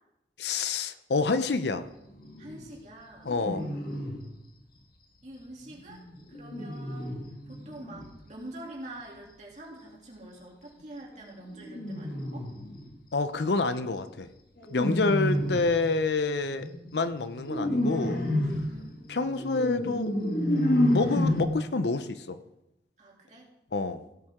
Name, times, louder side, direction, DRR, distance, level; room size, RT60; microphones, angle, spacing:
voice 1, 0.4-1.8 3.2-3.6 13.1-14.3 14.7-18.2 19.1-20.1 20.9-22.4 23.7-24.0, left 3 dB, 75° left, 11 dB, 0.6 m, -28 dB
sound 1, 2.1-2.7 3.3-4.3 5.7-8.1 11.4-12.9 14.6-15.8 16.6-21.4, left 1 dB, 55° left, 1.7 m, -30 dB
voice 2, 2.4-3.3 4.1-4.3 5.2-7.2 7.5-12.5 14.9-15.3 18.7-19.0 23.0-23.5, right 1 dB, 40° right, -3 dB, 2.8 m, -46 dB
17.0 x 7.7 x 3.6 m, 0.88 s
head